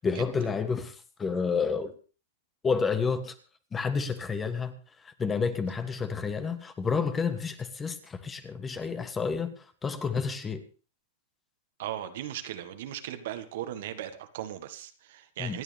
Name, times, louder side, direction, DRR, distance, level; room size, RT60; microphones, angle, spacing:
voice 1, 0.0-1.9 2.6-3.3 3.7-4.7 5.0-10.6 15.4-15.6, left 5 dB, 15° left, 1.4 m, -30 dB
voice 2, 11.8-15.6, right 11 dB, 60° right, 1.7 m, -37 dB
26.5 x 9.1 x 3.5 m
hypercardioid pair, 135°, 0 cm